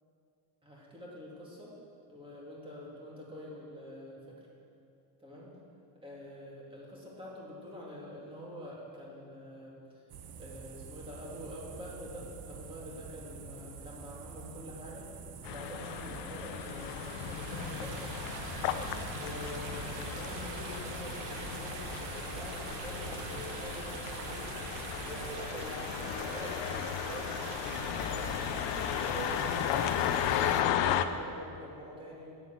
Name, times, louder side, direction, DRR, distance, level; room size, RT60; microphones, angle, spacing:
voice 1, 0.6-1.7 2.1-4.4 5.2-5.6 6.0-10.0 10.4-15.1 15.4-18.2 18.6-24.6 25.0-28.4 28.9-32.4, equal, 10° right, -4 dB, 2.5 m, -46 dB
sound 1, 10.1-25.4, right 5 dB, 55° right, 1.1 m, -47 dB
sound 2, 15.4-31.1, left 10 dB, 75° left, 0.8 m, -35 dB
sound 3, 16.4-30.6, right 3 dB, 85° right, 1.5 m, -42 dB
11.0 x 9.3 x 7.5 m, 2.6 s
cardioid pair, 165°, 42 cm